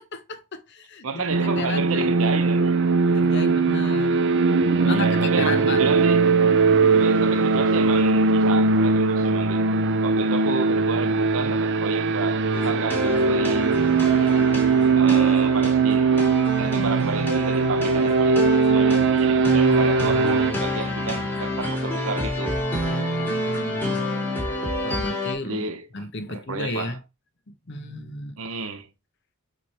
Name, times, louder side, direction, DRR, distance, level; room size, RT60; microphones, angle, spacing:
voice 1, 0.1-2.1 3.1-4.2 4.8-5.9 16.6-16.9 22.8-24.0 24.8-25.6 25.9-27.0 27.7-28.4, left 3 dB, 50° left, 0.9 m, -34 dB
voice 2, 1.0-2.8 4.8-6.3 6.9-9.7 10.0-13.7 14.2-14.4 15.0-16.2 16.6-22.6 25.4-26.0 26.3-27.0 28.4-28.9, right 4 dB, 70° right, 0.9 m, -31 dB
sound 1, 1.3-20.5, right 4 dB, 55° right, 0.5 m, -20 dB
sound 2, 12.5-25.3, equal, 10° left, 2.4 m, -29 dB
7.4 x 3.1 x 4.3 m
head